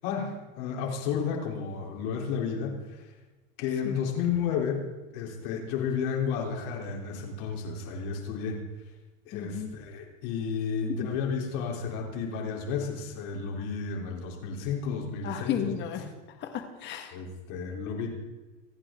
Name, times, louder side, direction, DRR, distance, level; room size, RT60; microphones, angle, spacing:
voice 1, 0.0-3.1 3.6-4.9 5.1-8.6 9.3-15.7 17.1-18.2, left 6 dB, 45° left, 1 dB, 3.6 m, -32 dB
voice 2, 9.3-9.7 15.2-16.0 16.4-17.1, left 9 dB, 30° left, 6 dB, 1.8 m, -33 dB
27.0 x 10.0 x 3.8 m, 1.2 s
supercardioid pair, 155°, 37 cm